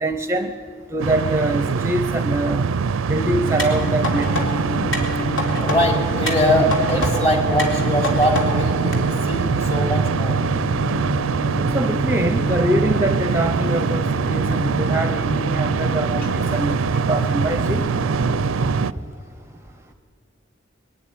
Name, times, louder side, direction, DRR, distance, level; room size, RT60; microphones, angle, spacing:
voice 1, 0.0-0.5 0.9-2.6 3.1-4.6 11.7-17.8, right 1 dB, 15° right, 7 dB, 0.6 m, -24 dB
sound 1, 1.0-18.9, right 5 dB, 85° right, 0.4 m, -23 dB
sound 2, 3.5-18.9, right 1 dB, 50° left, 1.0 m, -29 dB
sound 3, 3.6-4.4 4.9-5.8 6.3-7.1 7.6-8.4 8.9-9.0, left 2 dB, 75° left, 3.7 m, -27 dB
voice 2, 5.6-10.4, left 1 dB, 30° left, 1 dB, 3.4 m, -22 dB
22.0 x 13.0 x 10.0 m, 2.2 s
head